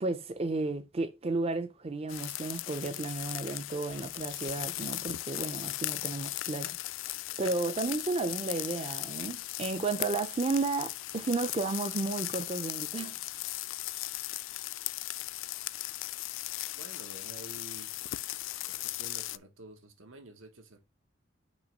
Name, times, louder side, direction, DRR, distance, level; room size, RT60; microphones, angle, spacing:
voice 1, 0.0-6.7 7.4-13.2, right 3 dB, 30° right, 0.5 m, -33 dB
sound 1, 2.1-19.4, left 17 dB, 65° left, 0.3 m, -37 dB
voice 2, 16.8-18.0 18.7-20.8, right 2 dB, 80° right, 1.2 m, -50 dB
6.2 x 3.1 x 5.2 m
head